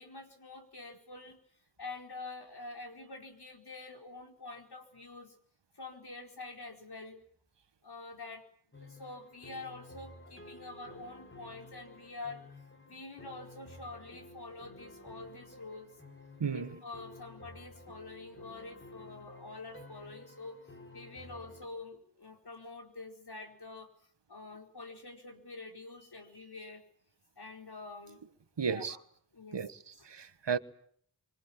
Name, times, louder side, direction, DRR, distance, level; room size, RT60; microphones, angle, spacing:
voice 1, 0.0-1.4 1.8-5.3 5.7-7.2 7.8-8.4 8.8-12.6 12.9-15.9 16.5-20.6 20.9-23.9 24.3-26.8 27.4-28.2 28.6-29.0 29.3-29.6, left 3 dB, 65° left, 4.9 m, -46 dB
sound 1, 8.7-21.7, left 2 dB, 30° left, 3.5 m, -53 dB
voice 2, 16.4-16.8 28.6-29.0 29.5-30.6, right 6 dB, 75° right, 1.4 m, -34 dB
26.0 x 25.0 x 7.3 m
wide cardioid pair, 65°, 42 cm